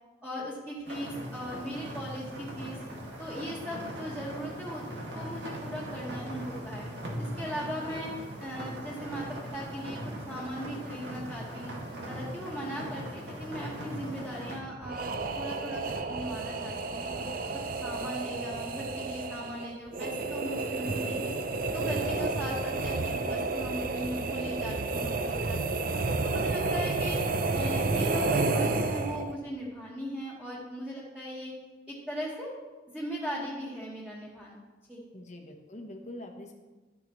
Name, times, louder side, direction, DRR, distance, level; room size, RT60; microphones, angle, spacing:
voice 1, 0.2-2.8 3.2-6.9 7.2-8.1 8.4-9.3 9.5-10.0 10.3-11.7 12.1-15.1 15.3-21.3 21.7-25.8 26.2-27.2 27.5-31.5 31.9-32.5 32.9-34.6 34.9-35.0, equal, 5° right, -8 dB, 1.7 m, -38 dB
sound 1, 0.8-14.6, right 1 dB, 75° right, 2.1 m, -40 dB
sound 2, 14.8-29.4, right 3 dB, 55° right, 0.5 m, -31 dB
voice 2, 22.0-22.4 35.1-36.5, left 1 dB, 40° left, 3 dB, 1.1 m, -45 dB
12.5 x 8.9 x 3.1 m, 1.2 s
head